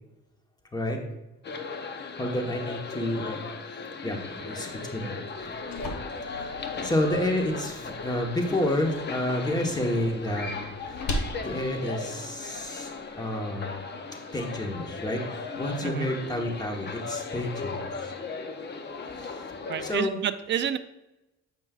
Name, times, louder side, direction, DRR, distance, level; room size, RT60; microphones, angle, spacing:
sound 1, 1.4-19.9, left 4 dB, 35° left, 0.6 m, -37 dB
voice 1, 2.2-3.4 4.0-5.5 6.2-6.5 6.8-10.5 11.4-12.9 13.1-13.8 14.3-15.2 15.6-18.1 19.2-19.3 19.8-20.2, left 1 dB, 15° left, 2 dB, 1.1 m, -29 dB
sound 2, 5.3-13.2, left 1 dB, 65° left, 1.0 m, -40 dB
voice 2, 19.7-20.8, right 9 dB, 40° right, 10 dB, 0.4 m, -29 dB
8.0 x 5.3 x 2.4 m, 0.98 s
cardioid pair, 90°, 30 cm